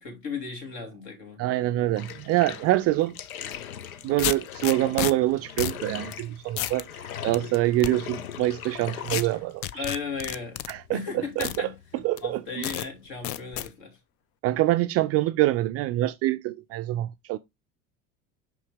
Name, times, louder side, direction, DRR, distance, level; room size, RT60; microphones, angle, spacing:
voice 1, 0.0-1.4 9.7-10.6 10.9-14.0, left 4 dB, 50° left, 2.7 m, -36 dB
voice 2, 1.4-3.2 4.0-6.9 7.2-9.6 10.7-11.0 11.4-11.7 12.0-12.6 14.4-17.4, right 16 dB, 35° right, 0.4 m, -25 dB
Bathtub (filling or washing), 1.9-13.6, left 9 dB, 70° left, 0.7 m, -41 dB
sound 1, 3.4-3.6 4.2-5.1 5.6-5.8 6.1-6.2 6.6-6.8 7.3-7.9 9.1-9.2 9.6-10.7 11.4-11.6 12.2-12.3 12.6-12.9 13.2-13.7, left 13 dB, 35° left, 0.4 m, -30 dB
5.8 x 5.4 x 3.4 m
figure-of-eight pair, 70°, 44 cm